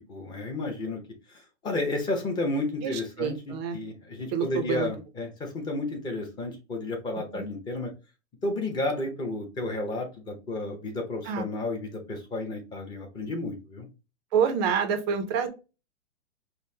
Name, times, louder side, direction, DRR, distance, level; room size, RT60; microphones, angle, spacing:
voice 1, 0.1-1.0 1.3-7.9 8.4-13.9, left 2 dB, 10° left, 3 dB, 0.7 m, -32 dB
voice 2, 2.8-3.8 4.3-4.9 7.3-7.5 11.3-11.4 14.3-15.5, right 7 dB, 25° right, 6 dB, 0.4 m, -27 dB
5.4 x 2.1 x 2.7 m, 0.30 s
hypercardioid pair, 145°, 36 cm